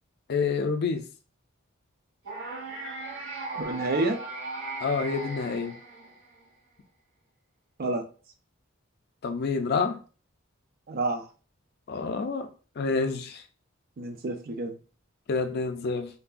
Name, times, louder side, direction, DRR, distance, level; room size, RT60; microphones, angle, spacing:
voice 1, 0.3-1.0 4.8-5.8 9.2-10.0 11.9-12.5 12.8-13.4 15.3-16.1, left 4 dB, 50° left, 7 dB, 0.4 m, -28 dB
sound 1, 2.2-6.4, right 2 dB, 75° right, 1.3 m, -37 dB
voice 2, 3.6-4.2 7.8-8.0 10.9-11.3 14.0-14.8, right 2 dB, 45° right, 5 dB, 0.4 m, -29 dB
3.2 x 2.1 x 2.4 m, 0.36 s
head